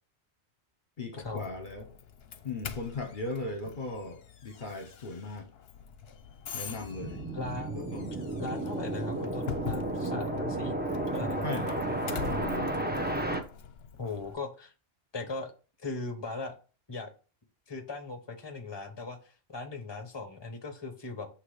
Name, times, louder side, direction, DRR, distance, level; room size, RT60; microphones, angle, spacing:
voice 1, 1.0-1.9 2.4-5.5 6.5-7.2 7.7-8.1 11.4-12.7, left 2 dB, 50° left, 1.1 m, -38 dB
Doorbell, 1.2-14.3, left 7 dB, 65° left, 0.9 m, -44 dB
sound 1, 7.0-13.4, right 2 dB, 10° right, 0.8 m, -32 dB
voice 2, 7.3-8.0 8.4-10.8 11.1-11.5 14.0-14.7 15.1-15.5 15.8-16.5 16.9-17.1 17.7-21.3, left 3 dB, 25° left, 1.1 m, -38 dB
8.1 x 3.1 x 4.8 m
omnidirectional pair, 1.1 m